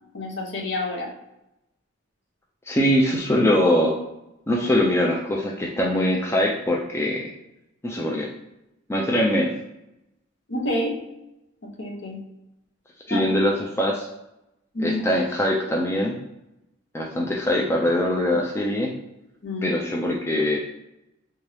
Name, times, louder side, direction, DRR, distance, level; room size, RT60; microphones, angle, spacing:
voice 1, 0.1-1.1 10.5-11.0 11.8-12.2 13.1-13.2 14.7-15.0 19.4-19.7, left 1 dB, 55° left, 0 dB, 0.8 m, -28 dB
voice 2, 2.7-4.0 4.5-7.2 7.8-8.3 8.9-9.5 13.1-14.1 14.8-16.2 16.9-18.9 19.6-20.6, left 1 dB, 10° left, -2 dB, 0.3 m, -22 dB
3.5 x 2.8 x 3.3 m, 0.89 s
head